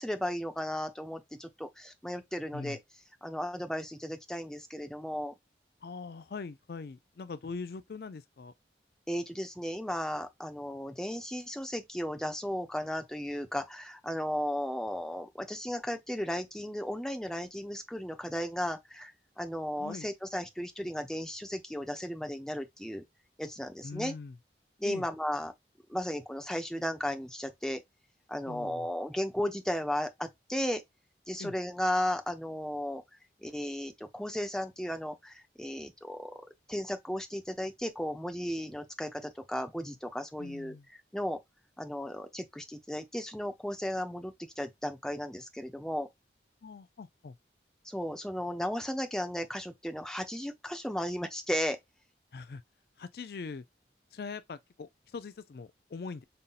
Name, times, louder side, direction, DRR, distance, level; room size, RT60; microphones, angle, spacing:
voice 1, 0.0-2.8 3.2-5.3 9.1-23.0 23.4-24.1 24.8-25.5 25.9-27.8 28.3-30.8 31.3-33.0 33.4-36.4 36.7-41.4 41.8-46.1 47.8-51.8, equal, 5° left, 0.6 m, -35 dB
voice 2, 5.8-8.5 19.8-20.1 23.8-24.4 24.8-25.0 28.5-28.9 31.4-31.5 40.4-40.9 46.6-47.3 52.3-52.6 53.0-53.6 54.1-56.2, left 4 dB, 60° left, 0.4 m, -42 dB
5.3 x 2.7 x 2.4 m
head